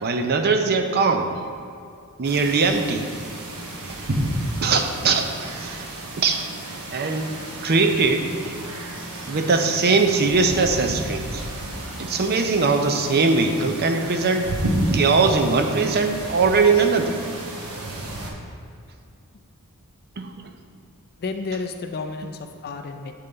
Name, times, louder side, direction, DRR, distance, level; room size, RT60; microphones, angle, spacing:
voice 1, 0.0-1.3 2.2-3.1 4.6-5.9 6.2-6.5 6.9-7.3 7.6-8.3 9.3-11.4 12.0-14.5 14.9-17.2 20.2-20.5, right 4 dB, 45° right, 6 dB, 0.5 m, -21 dB
sound 1, 2.2-18.3, right 1 dB, 70° right, 1.0 m, -31 dB
voice 2, 21.2-23.1, left 4 dB, 45° left, 5 dB, 0.4 m, -31 dB
6.6 x 5.6 x 3.9 m, 2.4 s
head